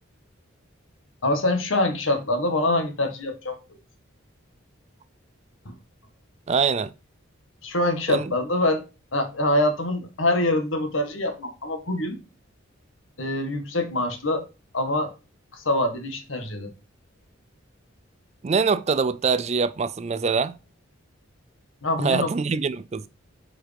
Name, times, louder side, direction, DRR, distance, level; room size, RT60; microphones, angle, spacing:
voice 1, 1.2-3.6 5.6-5.7 7.6-8.8 9.1-12.2 13.2-14.4 14.7-15.1 15.5-16.7 21.8-22.3, left 1 dB, 70° left, 1.5 m, -24 dB
voice 2, 6.5-6.9 8.1-8.3 18.4-20.6 22.0-23.1, right 5 dB, 30° right, 0.4 m, -24 dB
8.4 x 4.8 x 3.4 m
head